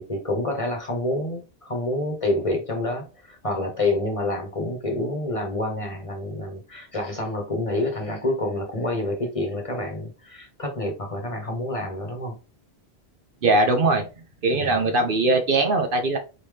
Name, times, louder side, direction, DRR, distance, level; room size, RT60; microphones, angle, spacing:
voice 1, 0.0-12.4 14.6-14.8, left 1 dB, 35° left, 1.0 m, -28 dB
voice 2, 13.4-14.0 14.4-16.2, right 2 dB, 55° right, 0.9 m, -20 dB
4.2 x 3.7 x 3.2 m
omnidirectional pair, 1.1 m